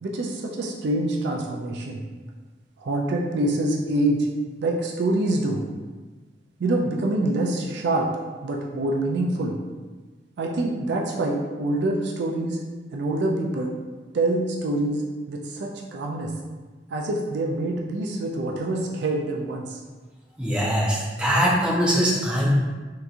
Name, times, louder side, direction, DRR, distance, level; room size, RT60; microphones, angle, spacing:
voice 1, 0.0-2.0 2.8-4.3 4.6-5.6 6.6-9.6 10.4-12.6 12.9-13.7 14.1-15.0 15.3-16.3 16.9-19.8, right 2 dB, 65° right, 0 dB, 0.4 m, -25 dB
voice 2, 20.4-22.5, equal, 5° right, -6 dB, 0.7 m, -22 dB
3.4 x 2.9 x 2.5 m, 1.3 s
head